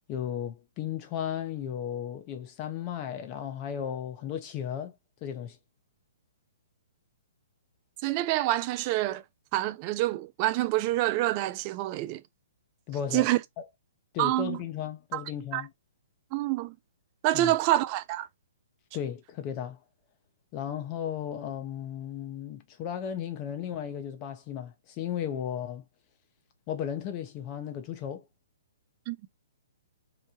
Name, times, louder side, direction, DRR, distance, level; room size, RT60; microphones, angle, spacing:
voice 1, 0.1-4.9 5.2-5.6 12.9-13.3 13.6-13.7 14.1-15.7 17.3-17.5 18.9-19.8 20.5-25.8 26.7-28.3, left 9 dB, 35° left, 0.6 m, -35 dB
voice 2, 8.0-9.2 9.5-12.2 13.1-13.4 14.2-14.6 15.1-15.2 15.5-15.6 16.3-16.8 17.2-18.3 29.1-29.2, right 16 dB, 35° right, 0.3 m, -27 dB
2.9 x 2.1 x 2.7 m
figure-of-eight pair, 125°, 0 cm